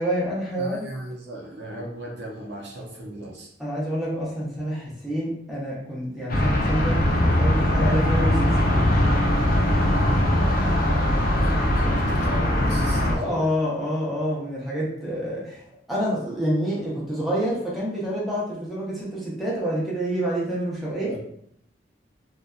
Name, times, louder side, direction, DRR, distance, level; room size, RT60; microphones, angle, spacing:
voice 1, 0.0-0.9 3.6-8.8 13.0-15.6 15.9-21.2, equal, ahead, -7 dB, 0.7 m, -27 dB
voice 2, 0.6-3.5 9.6-10.1 11.4-13.5 21.1-21.2, right 1 dB, 65° right, -1 dB, 0.6 m, -37 dB
sound 1, 6.3-13.1, left 1 dB, 50° left, 0.4 m, -21 dB
2.6 x 2.2 x 2.2 m, 0.71 s
head